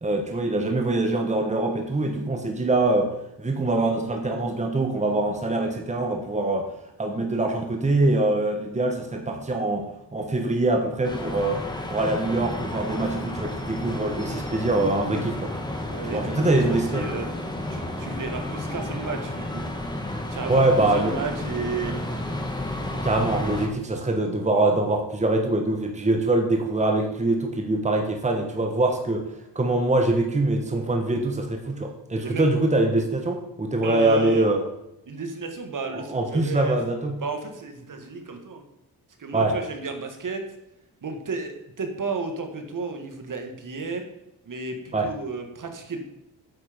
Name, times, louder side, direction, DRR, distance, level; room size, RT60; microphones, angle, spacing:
voice 1, 0.0-3.1 3.4-6.7 7.0-15.5 16.0-17.1 20.5-21.2 23.0-29.3 29.5-34.6 35.9-37.2 39.3-39.5 44.9-45.1, right 2 dB, 15° right, 3 dB, 1.4 m, -24 dB
sound 1, 11.0-23.7, left 1 dB, 10° left, 1.6 m, -32 dB
voice 2, 15.9-17.3 17.7-19.6 20.3-21.9 32.2-32.5 33.8-34.5 35.1-36.8 37.2-38.6 39.2-40.4 41.0-44.0 44.5-46.0, right 4 dB, 50° right, 4 dB, 1.8 m, -33 dB
9.6 x 7.3 x 5.2 m, 0.86 s
cardioid pair, 100°, 40 cm